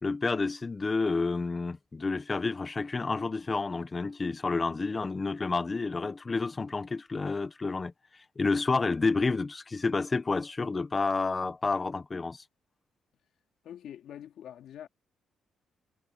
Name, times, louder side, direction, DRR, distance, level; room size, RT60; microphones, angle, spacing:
voice 1, 0.0-7.9 8.4-12.4, left 3 dB, 30° left, 1.3 m, -29 dB
voice 2, 13.6-14.9, left 10 dB, 75° left, 3.4 m, -44 dB
cardioid pair, 90°, 0 cm